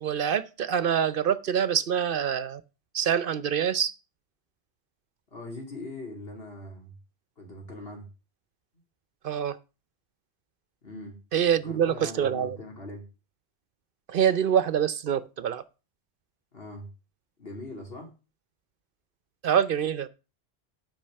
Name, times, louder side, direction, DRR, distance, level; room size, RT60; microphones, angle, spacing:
voice 1, 0.0-2.6 2.9-3.9 9.2-9.6 11.3-12.6 14.1-15.6 19.4-20.1, right 8 dB, 65° right, 0.8 m, -25 dB
voice 2, 5.3-7.0 7.4-8.1 10.8-11.2 11.6-13.0 16.5-16.9 17.4-18.1, left 2 dB, 70° left, 3.1 m, -41 dB
9.0 x 5.2 x 6.4 m
omnidirectional pair, 1.0 m